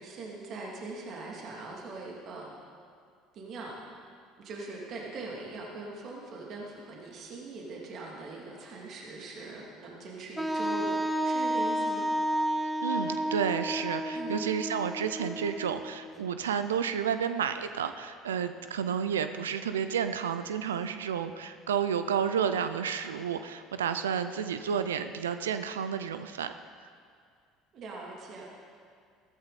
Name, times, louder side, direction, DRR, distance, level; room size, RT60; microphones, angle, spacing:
voice 1, 0.0-2.5 3.3-3.8 4.4-12.1 14.1-14.5 27.7-28.5, right 3 dB, 55° right, -2 dB, 2.8 m, -41 dB
Wind instrument woodwind instrument, 10.4-16.1, right 1 dB, 5° right, 1.0 m, -31 dB
voice 2, 12.8-26.5, right 7 dB, 90° right, 10 dB, 0.5 m, -31 dB
15.0 x 14.0 x 4.2 m, 2.1 s
hypercardioid pair, 70°, 0 cm